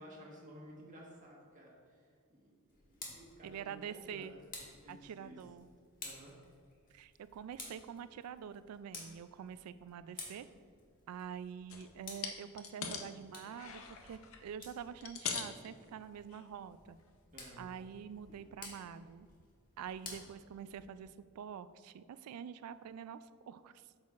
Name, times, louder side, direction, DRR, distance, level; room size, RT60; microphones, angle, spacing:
voice 1, 0.0-4.4 4.8-5.4 6.0-6.3 17.3-17.7, equal, 35° right, -3 dB, 1.3 m, -55 dB
Tick, 2.7-21.1, left 3 dB, 40° left, 1.3 m, -54 dB
voice 2, 3.4-4.3 4.9-5.7 6.9-10.5 11.1-17.0 17.6-19.3 19.8-23.9, right 8 dB, 90° right, 16 dB, 0.3 m, -46 dB
sound 1, 11.7-11.9 12.2-13.1 13.4-14.4 14.9-15.7 16.3-16.4 16.9-17.0, left 6 dB, 65° left, 0.6 m, -41 dB
8.2 x 6.4 x 2.4 m, 2.1 s
head